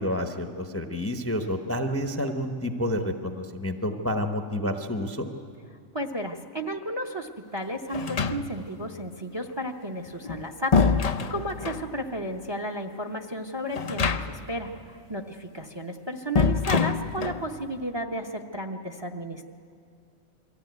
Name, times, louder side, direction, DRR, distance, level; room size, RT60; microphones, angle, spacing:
voice 1, 0.0-5.3, left 1 dB, 10° left, 6 dB, 0.8 m, -29 dB
voice 2, 5.9-19.4, equal, 20° right, 4 dB, 0.9 m, -33 dB
sound 1, 7.9-8.8 10.1-11.9 13.7-14.6 14.8-14.9 16.3-17.5, left 5 dB, 45° left, 0.5 m, -25 dB
23.0 x 15.0 x 9.3 m, 2.3 s
omnidirectional pair, 1.4 m